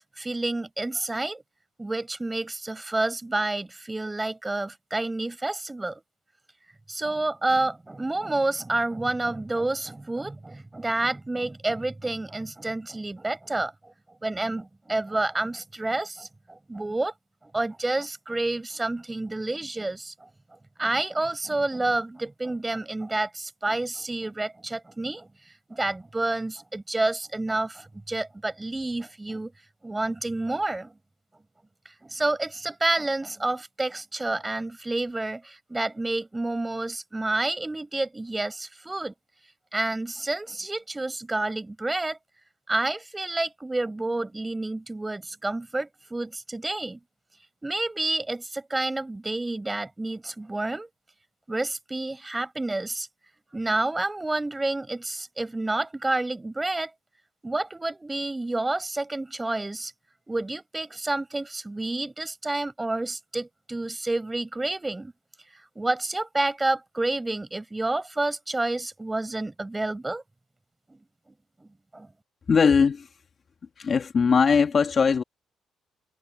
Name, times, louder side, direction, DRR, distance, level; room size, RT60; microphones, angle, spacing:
voice 1, 0.0-1.4 1.8-6.0 6.9-13.7 14.2-17.1 17.5-20.3 20.8-25.3 25.7-29.5 29.8-30.9 32.0-39.1 39.7-42.2 42.7-47.0 47.6-50.9 51.5-53.1 53.5-56.9 57.4-59.9 60.3-65.1 65.8-70.2 70.9-71.0 71.9-72.1, right 2 dB, 15° right, 5.8 m, -29 dB
voice 2, 72.5-73.1 73.8-75.2, left 5 dB, 45° left, 2.0 m, -20 dB
cardioid pair, 90°, 0 cm